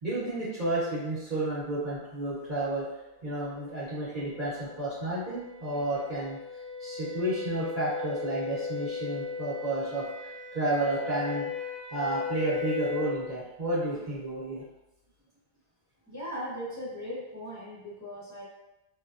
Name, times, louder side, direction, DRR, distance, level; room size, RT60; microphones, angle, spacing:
voice 1, 0.0-2.8 3.2-6.4 6.8-11.5 11.9-14.6, right 2 dB, 50° right, -10 dB, 0.9 m, -31 dB
sound 1, 3.3-13.3, left 5 dB, 65° left, 0.7 m, -37 dB
voice 2, 16.0-18.4, equal, 20° left, -7 dB, 0.5 m, -38 dB
3.1 x 2.1 x 2.3 m, 0.96 s
omnidirectional pair, 1.0 m